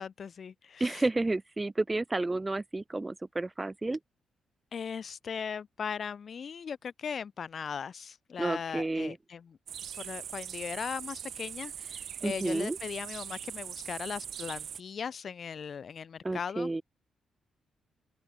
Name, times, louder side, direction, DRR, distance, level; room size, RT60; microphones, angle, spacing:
voice 1, 0.0-1.0 4.7-9.6 10.0-16.7, left 6 dB, 55° left, 3.2 m, -38 dB
voice 2, 0.8-4.0 8.4-9.2 12.2-12.8 16.2-16.8, right 2 dB, 20° right, 1.1 m, -31 dB
sound 1, 9.7-14.8, right 9 dB, 70° right, 3.6 m, -41 dB
open air
cardioid pair, 80°, 0 cm